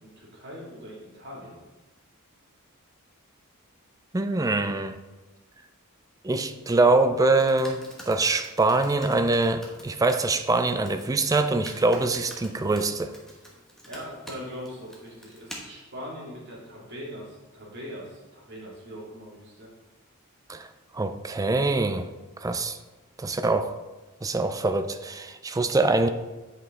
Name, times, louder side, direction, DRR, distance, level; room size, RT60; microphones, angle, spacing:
voice 1, 0.0-1.6 13.3-13.4 13.9-19.7, equal, 55° right, -5 dB, 2.4 m, -41 dB
voice 2, 4.1-5.0 6.2-13.1 20.5-20.7 20.9-22.1 22.4-22.8 23.2-23.7 24.2-26.1, right 3 dB, 15° right, 9 dB, 0.4 m, -24 dB
Computer keyboard, 7.1-15.6, equal, ahead, 1.1 m, -47 dB
8.1 x 5.3 x 3.7 m, 1.2 s
head